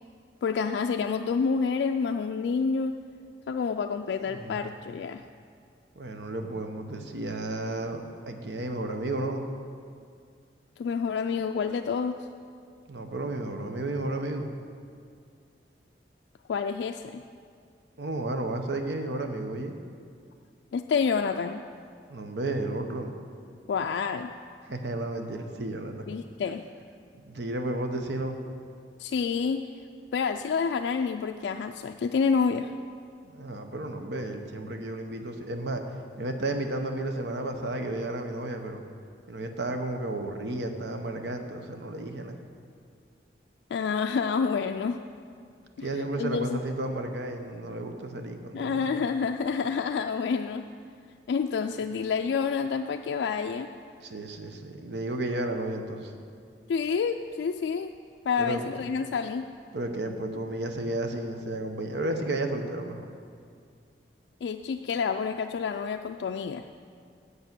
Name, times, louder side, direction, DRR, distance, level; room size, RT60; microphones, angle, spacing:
voice 1, 0.4-2.9 3.5-5.2 10.8-12.2 16.5-17.2 20.7-21.6 23.7-24.3 26.1-26.7 29.0-29.7 30.1-32.7 43.7-45.0 45.8-45.9 46.2-46.6 48.5-50.6 51.3-53.7 56.7-57.9 58.3-59.4 64.4-66.6, left 5 dB, 80° left, 5 dB, 0.3 m, -28 dB
voice 2, 4.3-4.7 6.0-9.5 12.9-14.6 18.0-19.7 22.1-23.2 24.7-26.0 27.2-28.4 33.3-35.8 36.2-38.8 39.3-42.4 45.8-49.0 54.0-56.1 58.4-58.6 59.7-63.1, right 2 dB, 80° right, 5 dB, 0.8 m, -32 dB
8.1 x 8.0 x 6.0 m, 2.3 s
head